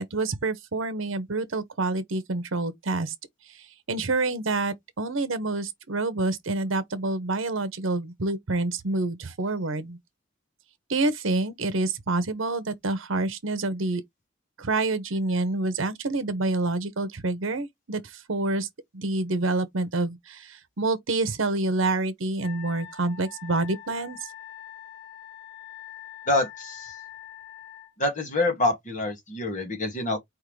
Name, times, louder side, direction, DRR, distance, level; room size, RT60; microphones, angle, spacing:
voice 1, 0.0-3.1 3.5-10.0 10.9-14.0 14.6-18.7 18.9-24.2, right 2 dB, 80° right, 0.9 m, -27 dB
Wind instrument woodwind instrument, 22.4-27.9, left 10 dB, 55° left, 1.8 m, -44 dB
voice 2, 26.3-26.9 28.0-30.2, left 2 dB, 40° left, 1.9 m, -26 dB
4.5 x 3.6 x 3.2 m
head